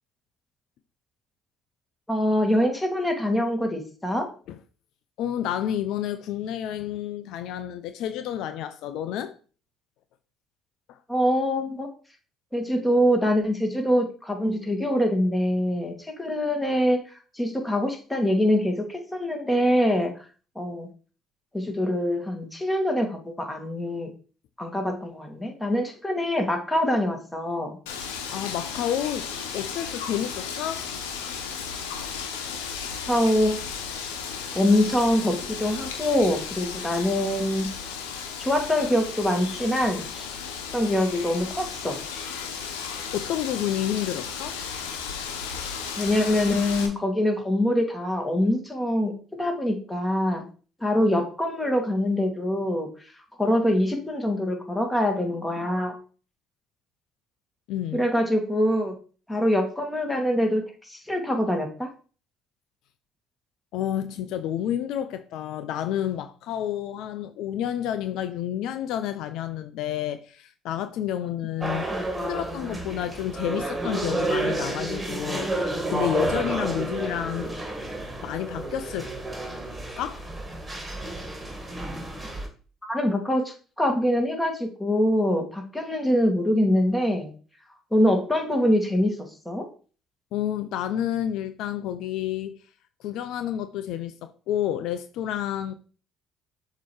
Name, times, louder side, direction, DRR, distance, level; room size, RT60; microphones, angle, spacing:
voice 1, 2.1-4.3 11.1-11.9 12.5-17.0 17.3-20.1 20.6-20.9 21.5-24.1 24.6-27.8 33.1-33.6 34.6-37.7 38.4-40.3 40.7-42.0 46.0-50.4 50.8-52.9 53.4-55.9 57.9-59.0 59.3-61.9 71.9-72.1 82.9-87.3 87.9-89.1 89.5-89.7, left 1 dB, 10° left, 2.1 m, -24 dB
voice 2, 5.2-9.3 10.9-11.0 28.3-30.9 43.1-44.6 57.7-58.1 63.7-71.9 72.2-77.6 78.2-79.1 80.0-80.3 90.3-92.6 93.0-95.7, left 11 dB, 70° left, 0.5 m, -30 dB
Wind, 27.9-46.9, left 6 dB, 85° left, 1.0 m, -35 dB
sound 1, 71.6-82.5, right 2 dB, 20° right, 2.0 m, -31 dB
6.9 x 3.0 x 4.7 m
hypercardioid pair, 60°, 0 cm